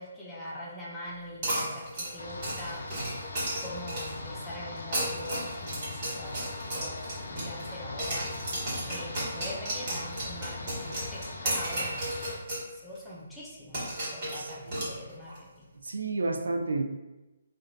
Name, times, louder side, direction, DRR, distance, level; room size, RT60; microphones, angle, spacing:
voice 1, 0.0-3.1 3.4-6.4 6.7-7.0 7.3-8.4 8.9-12.4 12.7-15.7, left 1 dB, 5° left, -7 dB, 0.6 m, -43 dB
sound 1, 1.4-4.3 4.8-7.7 8.0-12.7 12.9-13.0 13.7-15.4, right 1 dB, 45° right, 1.5 m, -34 dB
sound 2, 2.2-12.4, left 2 dB, 70° left, 0.4 m, -40 dB
voice 2, 14.3-14.8 15.8-16.9, right 3 dB, 80° right, 6 dB, 0.3 m, -31 dB
2.9 x 2.5 x 2.5 m, 1.0 s
hypercardioid pair, 150°, 0 cm